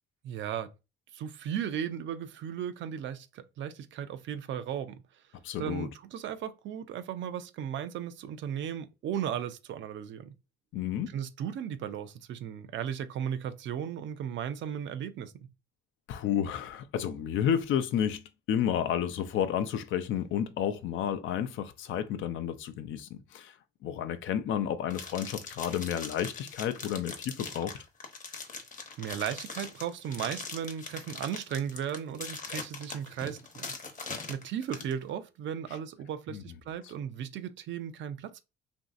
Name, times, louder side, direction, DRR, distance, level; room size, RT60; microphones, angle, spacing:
voice 1, 0.2-0.7 1.1-5.0 5.6-10.3 11.1-15.5 29.0-33.6 34.3-38.4, right 9 dB, 70° right, 0.5 m, -36 dB
voice 2, 5.4-5.9 10.7-11.1 16.1-23.6 23.8-27.8 36.3-36.4, left 9 dB, 75° left, 0.5 m, -31 dB
sound 1, 24.9-34.9, left 4 dB, 40° left, 0.8 m, -41 dB
3.0 x 2.6 x 2.4 m
cardioid pair, 90°, 20 cm